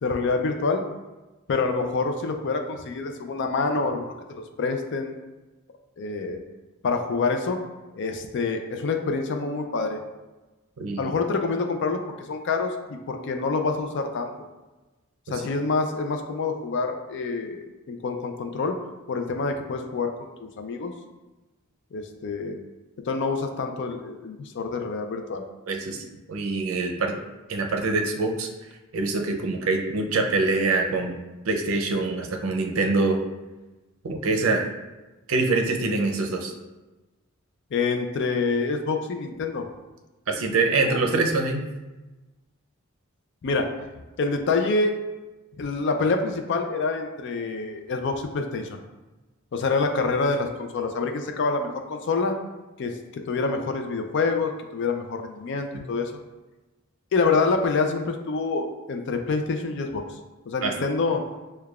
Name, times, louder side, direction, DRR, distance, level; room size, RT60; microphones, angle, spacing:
voice 1, 0.0-0.8 1.5-5.1 6.0-6.4 6.8-7.6 7.9-10.0 11.0-12.0 12.3-14.3 15.3-18.8 19.1-20.9 21.9-22.6 23.0-25.4 37.7-39.7 40.9-41.0 43.4-43.7 44.2-44.9 45.6-48.8 49.5-52.3 52.8-56.1 57.1-60.0 60.5-61.2, left 4 dB, 60° left, 5 dB, 0.4 m, -26 dB
voice 2, 10.8-11.1 15.3-15.4 25.7-27.2 27.5-28.5 28.9-31.2 31.4-33.2 34.0-34.7 35.3-36.5 40.3-41.6 60.6-60.7, right 3 dB, 75° right, 2 dB, 0.5 m, -24 dB
6.5 x 2.2 x 2.3 m, 1.1 s
head